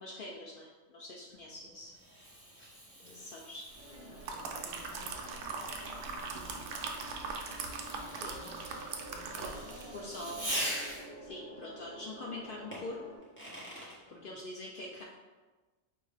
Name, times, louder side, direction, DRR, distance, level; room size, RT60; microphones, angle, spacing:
voice 1, 0.0-1.9 3.1-3.7 8.2-8.5 9.3-9.6 9.9-10.4 11.2-13.2 14.1-15.0, left 2 dB, 75° left, -2 dB, 0.5 m, -44 dB
Fireworks, 1.3-11.3 12.7-14.0, equal, 10° left, 0.8 m, -44 dB
voice 2, 3.0-7.1 7.9-10.7 14.1-14.4, left 1 dB, 20° right, -5 dB, 0.8 m, -56 dB
sound 1, 3.7-13.2, right 1 dB, 35° left, 1.1 m, -50 dB
sound 2, 3.9-10.0 10.3-10.5, right 4 dB, 70° right, 0.9 m, -41 dB
4.5 x 2.7 x 3.3 m, 1.2 s
omnidirectional pair, 1.4 m